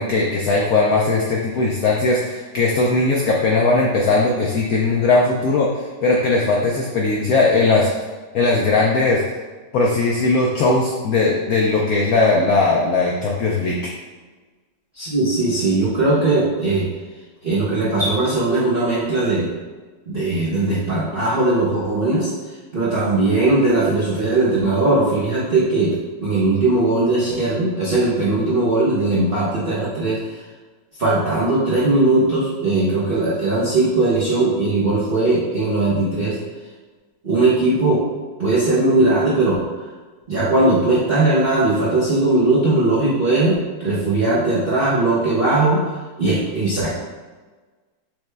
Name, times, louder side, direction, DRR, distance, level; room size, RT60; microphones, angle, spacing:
voice 1, 0.0-5.7 6.0-7.9 8.3-9.2 9.7-13.8, left 3 dB, 80° left, -2 dB, 0.8 m, -18 dB
voice 2, 14.9-16.9 17.4-19.5 20.1-22.3 22.7-25.9 26.2-30.2 31.0-36.4 37.2-38.0 38.4-39.6 40.3-45.8 46.2-46.9, right 2 dB, 60° right, -9 dB, 0.5 m, -19 dB
6.4 x 2.2 x 3.2 m, 1.3 s
omnidirectional pair, 2.1 m